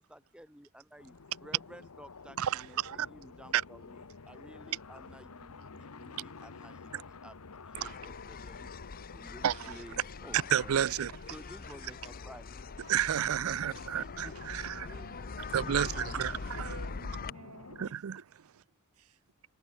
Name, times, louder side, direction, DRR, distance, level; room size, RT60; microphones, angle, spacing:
voice 1, 0.0-8.7 9.1-10.9 11.3-12.5 13.9-14.4 14.8-15.1 15.5-15.8, equal, 5° right, 2.3 m, -53 dB
sound 1, 1.0-17.9, left 4 dB, 85° left, 1.0 m, -50 dB
voice 2, 2.4-3.1 3.5-3.6 6.9-7.0 7.8-7.9 9.4-9.7 10.5-11.1 12.9-14.9 15.5-16.7 17.8-18.2, right 9 dB, 70° right, 0.4 m, -31 dB
sound 2, 7.8-17.3, left 4 dB, 40° left, 0.6 m, -43 dB
voice 3, 16.5-18.2 18.9-19.2, right 3 dB, 85° right, 2.0 m, -51 dB
head